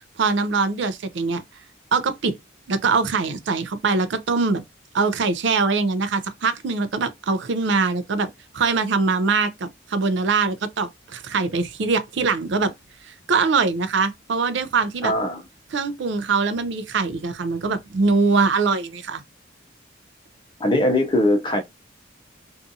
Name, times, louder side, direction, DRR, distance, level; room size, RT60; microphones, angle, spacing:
voice 1, 0.2-1.4 1.9-2.3 2.7-4.6 4.9-12.7 13.0-15.1 15.7-19.2, right 4 dB, 65° right, 0.4 m, -22 dB
voice 2, 15.0-15.4 20.6-21.6, left 1 dB, 25° left, 0.4 m, -20 dB
2.6 x 2.3 x 2.6 m
head